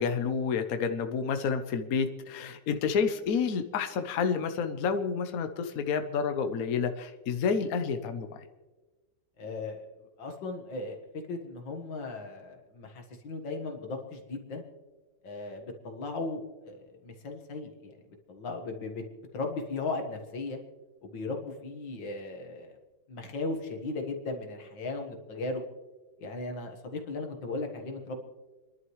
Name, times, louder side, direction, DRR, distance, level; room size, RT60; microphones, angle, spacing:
voice 1, 0.0-8.4, left 6 dB, 60° left, 7 dB, 1.2 m, -29 dB
voice 2, 9.4-11.0 11.3-14.6 15.2-17.9 18.3-19.0 19.3-20.6 21.0-22.8 23.1-25.6 26.2-28.2, left 3 dB, 85° left, 3 dB, 2.3 m, -37 dB
30.0 x 11.5 x 3.2 m, 1.2 s
omnidirectional pair, 1.9 m